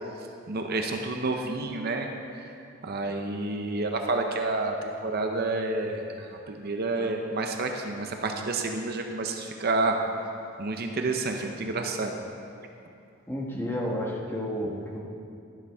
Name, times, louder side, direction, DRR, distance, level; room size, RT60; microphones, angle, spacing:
voice 1, 0.5-2.1 2.3-2.4 2.8-10.0 10.6-12.1, right 2 dB, 45° right, 3 dB, 0.7 m, -29 dB
voice 2, 13.3-15.0, equal, 10° left, -2 dB, 1.2 m, -31 dB
12.5 x 11.5 x 3.5 m, 2.5 s
head